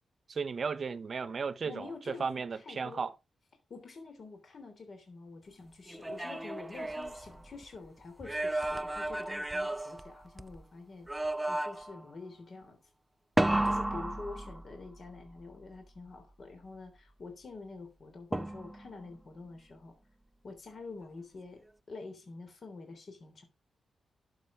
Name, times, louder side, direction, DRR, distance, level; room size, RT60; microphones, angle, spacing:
voice 1, 0.3-3.1 13.9-14.1, right 5 dB, 45° right, 0.9 m, -35 dB
voice 2, 1.6-3.0 3.7-11.1 11.5-12.8 13.6-19.9 20.4-23.4, left 3 dB, 50° left, 3.2 m, -47 dB
sound 1, 5.9-7.8 8.2-10.6 11.1-12.0 13.4-15.0 18.3-19.0, right 1 dB, 10° right, 0.5 m, -33 dB
11.5 x 6.6 x 4.9 m
wide cardioid pair, 115°, 0 cm